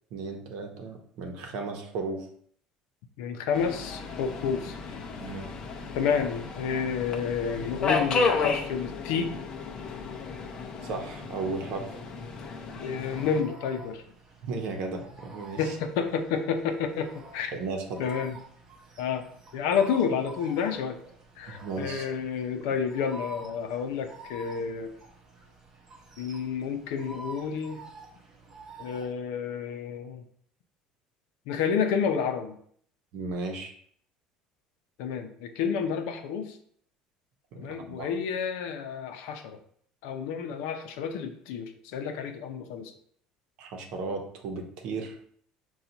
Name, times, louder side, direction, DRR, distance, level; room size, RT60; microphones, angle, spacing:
voice 1, 0.1-2.3 5.2-5.5 10.8-12.0 14.4-15.8 17.5-18.0 21.5-22.1 33.1-33.7 37.5-38.1 43.6-45.2, right 3 dB, 65° right, 3 dB, 0.8 m, -35 dB
voice 2, 3.2-4.8 5.9-9.4 12.8-14.0 15.6-17.5 18.0-18.4 19.0-19.3 19.5-21.0 21.4-24.9 26.2-27.8 28.8-30.2 31.5-32.6 35.0-36.6 37.6-39.6 40.0-42.9, left 6 dB, 90° left, 6 dB, 0.6 m, -30 dB
Subway metro underground, 3.5-13.4, left 4 dB, 35° left, 0.6 m, -33 dB
sound 1, 12.0-29.1, right 2 dB, 25° right, 0.8 m, -48 dB
5.8 x 2.4 x 3.9 m, 0.62 s
cardioid pair, 150°, 2 cm